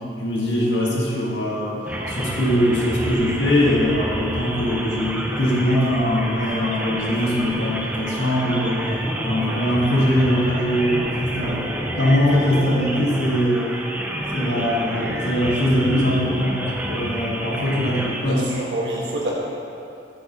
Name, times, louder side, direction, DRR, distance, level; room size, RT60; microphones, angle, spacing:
voice 1, 0.2-1.8 2.1-8.9 9.2-11.7 12.0-13.7 14.3-18.5, equal, 80° left, -4 dB, 1.4 m, -21 dB
sound 1, 1.9-18.2, right 1 dB, 10° right, 0.5 m, -29 dB
voice 2, 18.2-19.3, right 1 dB, 75° right, -4 dB, 1.3 m, -27 dB
7.8 x 7.0 x 2.8 m, 2.6 s
head